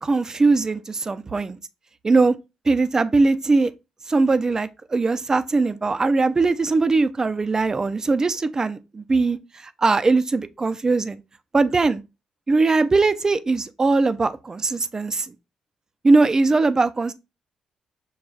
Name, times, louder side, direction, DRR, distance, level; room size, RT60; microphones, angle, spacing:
voice 1, 0.0-1.6 2.0-2.3 2.7-3.7 4.1-9.4 9.6-11.2 11.5-12.0 12.5-15.3 16.0-17.1, right 3 dB, 30° right, 0.4 m, -20 dB
6.2 x 2.3 x 2.3 m
cardioid pair, 75°, 2 cm